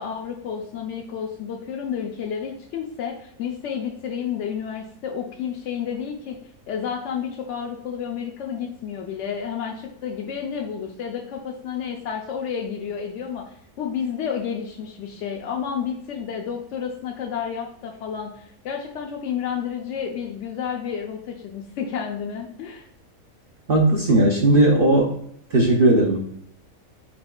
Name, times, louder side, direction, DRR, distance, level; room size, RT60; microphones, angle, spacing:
voice 1, 0.0-6.4 6.7-22.9, left 7 dB, 65° left, 0 dB, 0.9 m, -31 dB
voice 2, 23.7-25.1 25.5-26.2, right 1 dB, 55° right, 0 dB, 0.6 m, -17 dB
5.2 x 4.3 x 2.3 m, 0.69 s
omnidirectional pair, 1.5 m